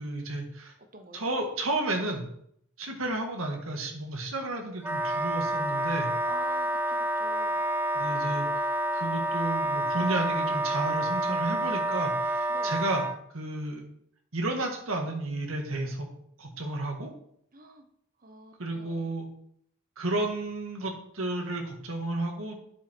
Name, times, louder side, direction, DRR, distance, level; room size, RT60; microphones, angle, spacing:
voice 1, 0.0-0.7 1.1-2.2 2.8-6.1 7.9-8.5 8.9-13.1 13.3-13.8 14.3-16.1 16.4-17.1 18.6-19.3 20.0-22.6, right 2 dB, 80° right, 2 dB, 1.8 m, -32 dB
voice 2, 0.9-1.3 6.2-7.6 12.5-12.8 17.5-17.9 18.2-19.1, right 3 dB, 40° right, 6 dB, 1.0 m, -47 dB
Wind instrument woodwind instrument, 4.8-13.2, right 1 dB, 10° right, 0.3 m, -28 dB
9.3 x 6.9 x 4.5 m, 0.70 s
head